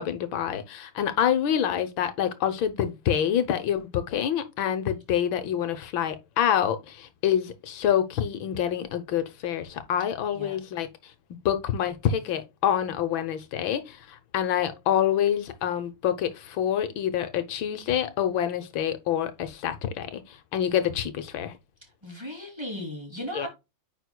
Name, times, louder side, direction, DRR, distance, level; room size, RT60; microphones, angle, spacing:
voice 1, 0.0-10.9 11.5-21.5 23.4-23.5, left 9 dB, 80° left, 1.7 m, -27 dB
voice 2, 21.8-23.5, left 1 dB, 15° right, 2.6 m, -37 dB
9.3 x 5.1 x 2.2 m
omnidirectional pair, 2.1 m